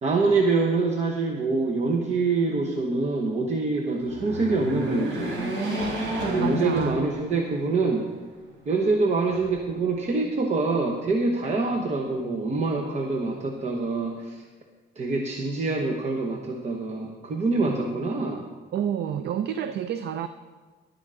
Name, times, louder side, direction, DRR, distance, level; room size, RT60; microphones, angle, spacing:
voice 1, 0.0-5.5 6.3-8.1 8.7-14.4 15.0-18.4, right 3 dB, 35° right, 1 dB, 0.9 m, -25 dB
sound 1, 4.0-7.6 8.1-8.2 9.2-10.0, right 1 dB, 85° right, 3.9 m, -30 dB
voice 2, 6.4-7.0 18.7-20.3, right 9 dB, 60° right, 11 dB, 0.4 m, -29 dB
11.5 x 11.5 x 3.7 m, 1.4 s
cardioid pair, 145°, 19 cm